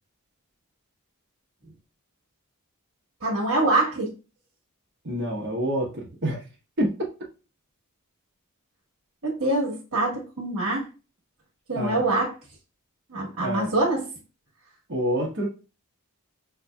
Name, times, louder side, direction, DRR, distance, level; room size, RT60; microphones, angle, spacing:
voice 1, 3.2-4.1 9.2-10.8 11.7-12.3 13.1-14.1, right 2 dB, 75° right, -4 dB, 1.3 m, -24 dB
voice 2, 5.0-6.5 6.8-7.1 11.7-12.1 13.4-13.7 14.9-15.5, equal, 50° right, -1 dB, 1.0 m, -27 dB
5.6 x 2.6 x 2.2 m, 0.33 s
head